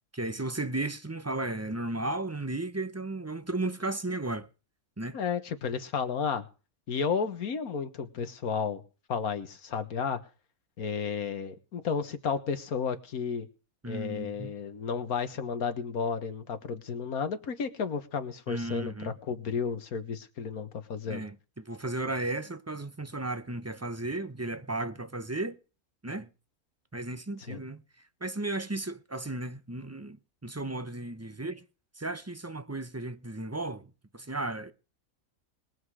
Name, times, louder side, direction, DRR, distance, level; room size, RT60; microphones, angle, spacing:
voice 1, 0.1-4.5 5.0-5.2 13.8-14.5 18.5-19.1 21.1-25.6 26.0-26.3 26.9-27.8 28.2-30.2 30.4-31.6 32.0-34.7, right 2 dB, 15° right, 0.6 m, -34 dB
voice 2, 5.1-6.5 6.9-8.8 9.1-10.2 10.8-13.5 13.9-21.3 27.5-27.6, left 6 dB, 85° left, 1.8 m, -32 dB
21.0 x 8.0 x 4.9 m
omnidirectional pair, 1.5 m